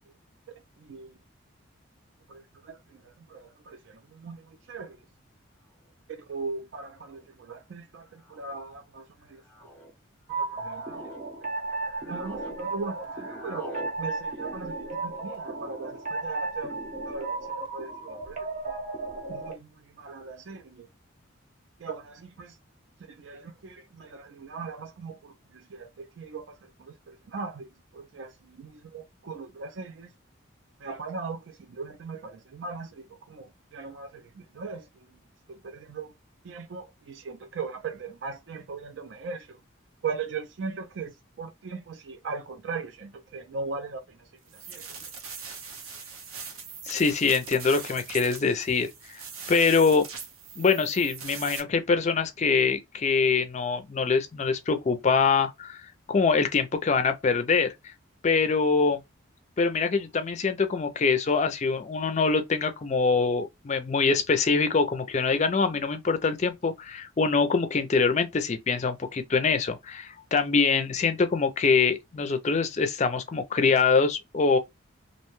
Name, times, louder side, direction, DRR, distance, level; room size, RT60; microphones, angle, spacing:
voice 1, 0.8-1.1 2.3-5.0 6.1-9.4 10.3-10.9 12.0-16.8 17.0-18.4 18.7-18.8 19.3-20.9 21.8-22.5 23.2-30.1 30.8-35.0 35.5-36.1 36.4-39.6 40.0-41.1 41.4-44.0 44.5-44.9, right 4 dB, 60° right, 0.4 m, -39 dB
sound 1, 5.9-6.0 7.0-7.3 8.2-8.6 9.4-9.9 10.5-11.2 11.7-12.6 12.8-13.9, equal, 10° left, 0.7 m, -44 dB
sound 2, 10.3-19.5, right 3 dB, 35° right, 0.8 m, -34 dB
sound 3, 44.5-51.6, right 5 dB, 85° right, 0.7 m, -41 dB
voice 2, 46.9-48.9 49.5-50.0 50.6-57.7 58.2-59.0 59.6-74.6, left 4 dB, 35° left, 0.4 m, -24 dB
2.6 x 2.1 x 3.0 m
head